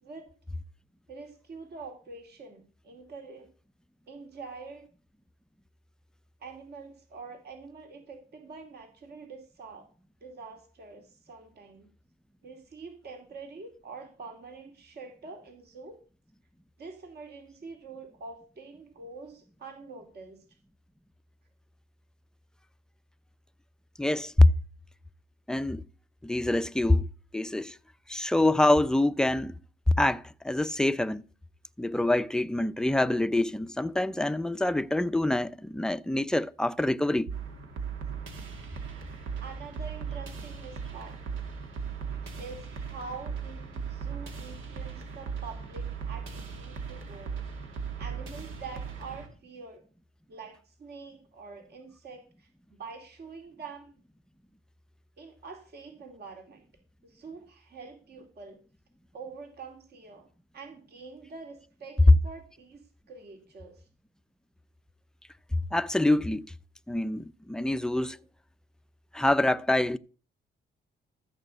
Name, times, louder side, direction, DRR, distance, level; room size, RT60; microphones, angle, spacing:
voice 1, 0.0-0.3 1.1-3.5 4.1-4.9 6.4-9.9 10.2-11.9 12.4-16.0 16.8-20.4 39.4-41.2 42.1-47.5 48.0-49.8 50.3-53.9 55.2-56.6 57.0-58.6 59.1-60.3 60.5-63.8, right 4 dB, 55° right, 2.5 m, -45 dB
voice 2, 24.0-24.5 25.5-25.8 26.2-27.1 27.3-27.8 28.1-29.6 29.9-31.2 31.8-37.3 65.7-66.5 66.9-68.2 69.1-70.0, left 1 dB, 5° left, 0.5 m, -25 dB
sound 1, 37.3-49.3, right 6 dB, 80° right, 2.3 m, -38 dB
13.5 x 5.1 x 7.8 m
cardioid pair, 90°, 20 cm